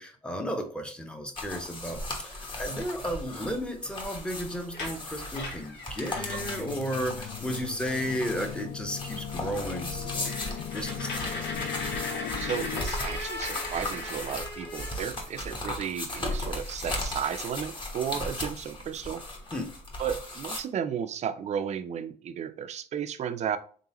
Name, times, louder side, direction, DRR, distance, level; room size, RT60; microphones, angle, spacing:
voice 1, 0.0-11.4 19.5-19.7, equal, 5° left, 5 dB, 0.8 m, -34 dB
sound 1, 1.3-20.6, left 1 dB, 30° left, 1.2 m, -37 dB
sound 2, 4.6-6.8 7.2-7.3 7.6-8.0 8.5-8.6 9.0-9.1 9.4-9.5 9.9-15.5 16.9-17.0 17.3-18.7 19.2-19.3 19.6-20.2, left 2 dB, 85° left, 1.2 m, -38 dB
sound 3, 6.1-12.9, left 10 dB, 55° left, 0.4 m, -38 dB
voice 2, 12.1-19.2 20.0-23.6, right 8 dB, 40° right, 10 dB, 0.5 m, -34 dB
3.8 x 3.5 x 2.9 m, 0.43 s
cardioid pair, 110°, 17 cm